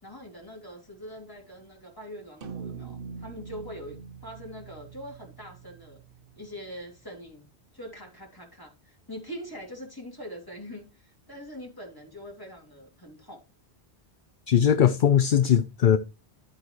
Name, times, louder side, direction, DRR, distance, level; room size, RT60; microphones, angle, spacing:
voice 1, 0.0-6.0 6.3-7.5 7.7-13.4, equal, 20° left, 3.3 m, -43 dB
sound 1, 2.4-6.9, right 6 dB, 60° right, 1.0 m, -43 dB
voice 2, 14.5-16.0, left 9 dB, 55° left, 0.7 m, -20 dB
12.0 x 8.4 x 3.2 m
omnidirectional pair, 1.1 m